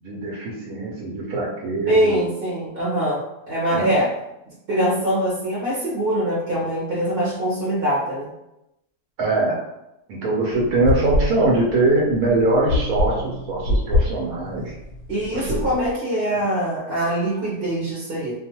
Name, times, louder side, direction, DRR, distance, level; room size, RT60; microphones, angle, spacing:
voice 1, 0.0-2.3 3.7-3.9 9.2-9.6 10.1-14.7 15.3-15.6, right 2 dB, 80° right, -3 dB, 1.1 m, -22 dB
voice 2, 1.9-3.2 3.5-4.1 4.7-8.3 15.1-18.3, right 1 dB, 50° right, -7 dB, 0.9 m, -23 dB
sound 1, 10.5-15.9, left 2 dB, 70° left, 0.8 m, -25 dB
2.4 x 2.3 x 2.8 m, 0.87 s
omnidirectional pair, 1.5 m